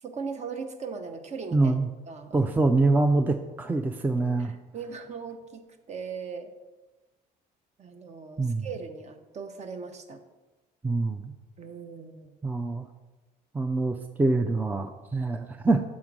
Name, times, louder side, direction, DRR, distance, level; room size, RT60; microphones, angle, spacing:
voice 1, 0.0-1.7 2.1-2.5 4.4-6.5 7.8-10.2 11.6-12.3, right 5 dB, 40° right, 8 dB, 0.8 m, -39 dB
voice 2, 1.5-1.9 2.3-4.5 8.4-8.7 10.8-11.3 12.4-12.9 13.5-15.8, right 3 dB, 10° right, 5 dB, 0.4 m, -25 dB
7.2 x 3.7 x 6.0 m, 1.2 s
cardioid pair, 110°, 17 cm